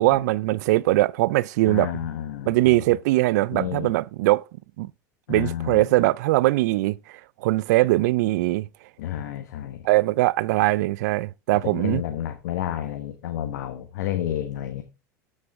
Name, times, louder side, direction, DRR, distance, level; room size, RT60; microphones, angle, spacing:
voice 1, 0.0-1.9 2.5-4.4 4.8-4.9 5.3-8.7 9.8-12.0, right 18 dB, 70° right, 0.4 m, -21 dB
voice 2, 1.6-2.8 3.5-3.9 5.3-5.9 9.0-9.9 11.6-14.8, left 11 dB, 75° left, 1.1 m, -30 dB
12.5 x 6.7 x 3.5 m
hypercardioid pair, 95°, 9 cm